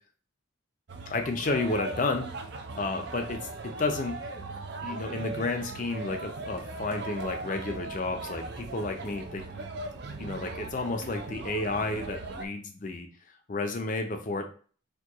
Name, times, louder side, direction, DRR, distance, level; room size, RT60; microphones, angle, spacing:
sound 1, 0.9-12.5, right 3 dB, 55° right, 0.4 m, -39 dB
voice 1, 1.1-2.3 2.8-4.2 4.8-9.7 10.2-13.1 13.5-14.5, left 3 dB, 40° left, 5 dB, 0.5 m, -31 dB
4.4 x 2.3 x 2.9 m, 0.42 s
head